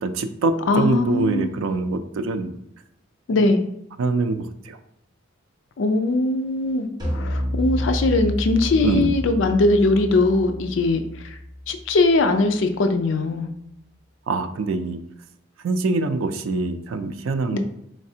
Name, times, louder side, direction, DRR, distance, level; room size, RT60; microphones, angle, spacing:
voice 1, 0.0-2.5 3.3-3.4 4.0-4.8 8.8-9.1 14.3-15.0 15.6-17.6, right 3 dB, 85° right, 9 dB, 0.4 m, -24 dB
voice 2, 0.7-1.5 3.3-3.7 5.8-6.9 7.1-11.0 11.7-13.5 17.5-17.6, left 2 dB, 65° left, 6 dB, 0.4 m, -20 dB
sound 1, 7.0-12.4, left 1 dB, 20° right, 1.1 m, -29 dB
4.0 x 3.3 x 2.7 m, 0.76 s
head